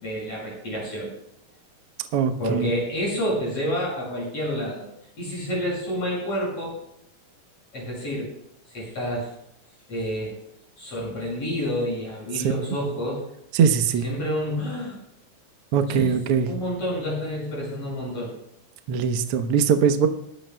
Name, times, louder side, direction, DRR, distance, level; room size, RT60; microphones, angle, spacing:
voice 1, 0.0-1.1 2.4-4.9 5.2-6.8 7.7-8.3 8.7-9.3 9.9-10.3 10.8-13.2 14.0-15.0 15.9-16.1 16.5-18.3, equal, 50° left, -5 dB, 7.2 m, -29 dB
voice 2, 2.1-2.7 13.5-14.0 15.7-16.5 18.9-20.1, right 7 dB, 75° right, 7 dB, 1.4 m, -21 dB
21.0 x 13.0 x 2.2 m, 0.77 s
omnidirectional pair, 3.8 m